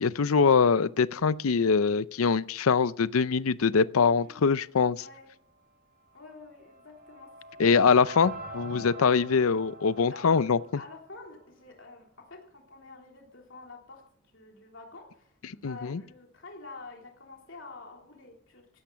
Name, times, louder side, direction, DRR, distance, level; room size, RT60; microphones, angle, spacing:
voice 1, 0.0-5.0 7.6-10.6 15.6-16.0, left 5 dB, 80° left, 0.5 m, -23 dB
voice 2, 4.2-4.6 5.0-5.3 6.1-8.3 10.1-14.0 14.3-18.8, left 3 dB, 60° left, 3.4 m, -48 dB
sound 1, 6.3-11.4, right 1 dB, 45° right, 5.6 m, -45 dB
16.5 x 12.5 x 5.7 m
head